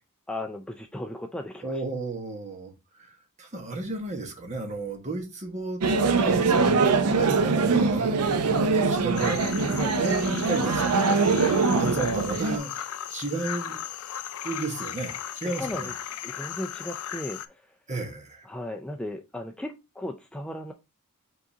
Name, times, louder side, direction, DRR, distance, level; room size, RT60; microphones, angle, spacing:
voice 1, 0.3-1.8 9.7-9.9 15.4-15.9 16.2-17.4 18.4-20.7, left 1 dB, 5° left, 0.3 m, -36 dB
voice 2, 1.6-2.7 3.4-5.8 6.2-6.8 7.2-9.4 10.0-12.8 13.1-13.8 14.4-15.9 17.9-18.4, right 3 dB, 30° right, 1.3 m, -33 dB
sound 1, 5.8-12.6, right 4 dB, 85° right, 0.6 m, -23 dB
sound 2, 9.1-17.5, left 10 dB, 70° left, 0.5 m, -36 dB
5.1 x 3.8 x 2.7 m
head